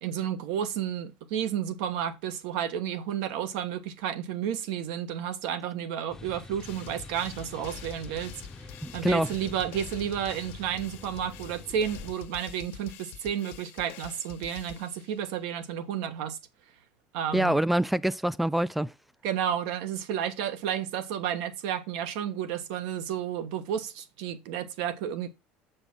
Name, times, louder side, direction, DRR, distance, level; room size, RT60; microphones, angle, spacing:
voice 1, 0.0-8.4 8.9-16.4 17.1-17.6 19.2-25.3, right 9 dB, 80° right, 1.3 m, -31 dB
sound 1, 6.1-12.1, left 2 dB, 15° left, 0.7 m, -46 dB
sound 2, 6.6-15.4, left 9 dB, 65° left, 1.3 m, -46 dB
voice 2, 8.8-9.3 17.3-18.9, right 1 dB, 5° right, 0.4 m, -25 dB
7.4 x 5.1 x 6.2 m
cardioid pair, 130°, 4 cm